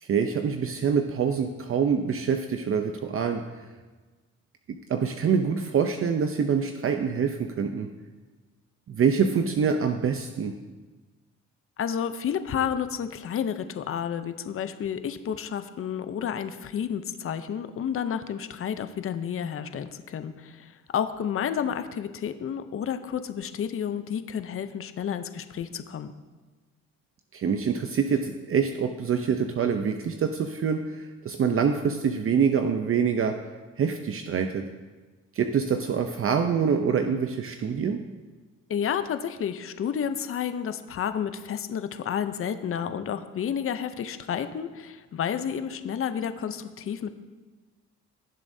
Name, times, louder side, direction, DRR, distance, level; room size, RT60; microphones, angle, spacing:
voice 1, 0.0-3.4 4.9-7.9 8.9-10.5 27.3-33.4 33.8-34.7 35.3-38.0, right 6 dB, 45° right, 5 dB, 0.6 m, -25 dB
voice 2, 11.8-26.1 38.7-47.2, left 8 dB, 45° left, 10 dB, 0.7 m, -31 dB
17.0 x 7.2 x 2.7 m, 1.3 s
cardioid pair, 90°, 30 cm